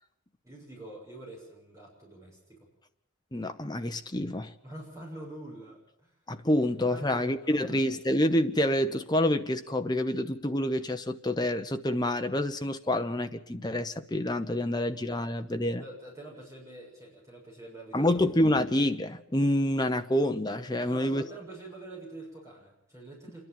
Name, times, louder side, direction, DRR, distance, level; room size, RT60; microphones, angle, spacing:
voice 1, 0.4-2.7 4.6-6.1 6.6-7.8 15.8-18.2 20.8-23.5, right 2 dB, 15° right, 6.9 m, -46 dB
voice 2, 3.3-4.5 6.3-15.8 17.9-21.2, left 1 dB, 20° left, 0.9 m, -27 dB
27.5 x 11.0 x 9.1 m
head